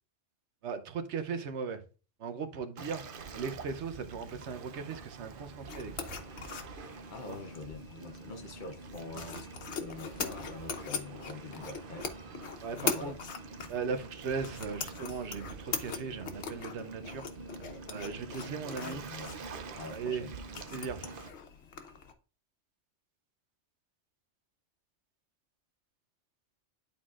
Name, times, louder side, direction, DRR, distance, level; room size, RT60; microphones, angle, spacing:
voice 1, 0.6-1.8 2.2-6.0 7.3-7.4 9.2-9.3 12.6-13.2 13.7-17.3 17.9-19.1 19.9-20.3 20.7-21.0, right 5 dB, 75° right, 1.0 m, -38 dB
Waves surf, 2.8-21.3, right 4 dB, 55° right, 0.7 m, -46 dB
sound 1, 5.7-22.1, left 6 dB, 70° left, 1.1 m, -41 dB
voice 2, 7.1-12.1 12.8-13.2 18.8-19.5 19.8-20.3, left 3 dB, 50° left, 0.8 m, -45 dB
11.0 x 4.1 x 2.4 m
omnidirectional pair, 1.2 m